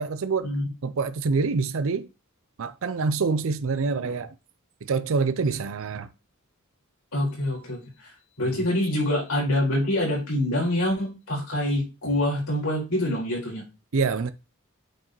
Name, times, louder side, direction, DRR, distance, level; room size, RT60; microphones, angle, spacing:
voice 1, 0.0-0.5 0.8-2.1 2.6-4.3 4.8-6.1 8.4-8.6 13.9-14.3, right 4 dB, 65° right, 0.5 m, -26 dB
voice 2, 7.1-8.1 8.4-13.6, left 1 dB, 75° left, 4.4 m, -25 dB
8.9 x 4.7 x 3.1 m
head